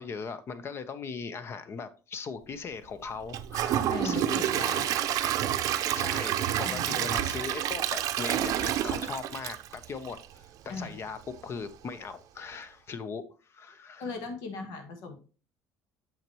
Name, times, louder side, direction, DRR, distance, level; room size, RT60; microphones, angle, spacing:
voice 1, 0.0-4.4 5.1-5.5 5.9-14.1, left 5 dB, 40° left, 13 dB, 0.7 m, -39 dB
Gurgling / Toilet flush / Trickle dribble, 3.3-10.4 10.8-10.9 11.3-11.4, right 11 dB, 65° right, 0.6 m, -29 dB
voice 2, 3.9-5.0 6.6-7.1 10.7-11.0 14.0-15.2, left 4 dB, 75° left, 6 dB, 1.5 m, -38 dB
7.2 x 5.8 x 3.0 m, 0.37 s
cardioid pair, 105°, 6 cm